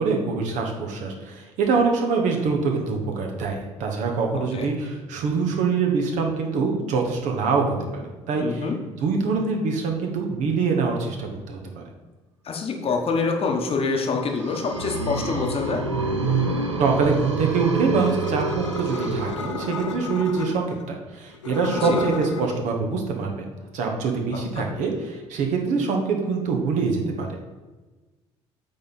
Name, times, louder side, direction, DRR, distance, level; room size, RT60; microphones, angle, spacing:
voice 1, 0.0-8.7 9.0-11.8 16.8-23.5 23.7-27.4, right 4 dB, 55° right, 2 dB, 1.2 m, -24 dB
voice 2, 4.3-4.7 8.4-8.8 12.4-15.8 21.8-22.0 24.3-24.7, left 4 dB, 40° left, 2 dB, 1.1 m, -26 dB
sound 1, 14.1-20.0, right 3 dB, 90° right, 0.5 m, -27 dB
sound 2, 18.0-20.8 21.3-22.6, left 5 dB, 85° left, 0.4 m, -32 dB
8.3 x 4.2 x 4.1 m, 1.2 s
figure-of-eight pair, 50°, 15 cm